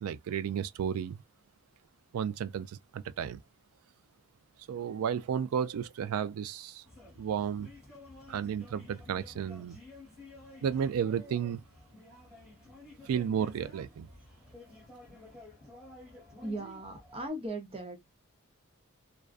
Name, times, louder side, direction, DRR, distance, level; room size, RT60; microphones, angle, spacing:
voice 1, 0.0-1.2 2.1-3.4 4.7-6.8 7.2-7.7 8.3-9.8 10.6-11.6 13.1-14.1, right 8 dB, 80° right, 0.3 m, -33 dB
sound 1, 6.8-17.3, left 2 dB, 5° right, 1.1 m, -52 dB
voice 2, 16.4-18.0, right 1 dB, 25° right, 0.6 m, -38 dB
2.4 x 2.2 x 2.3 m
head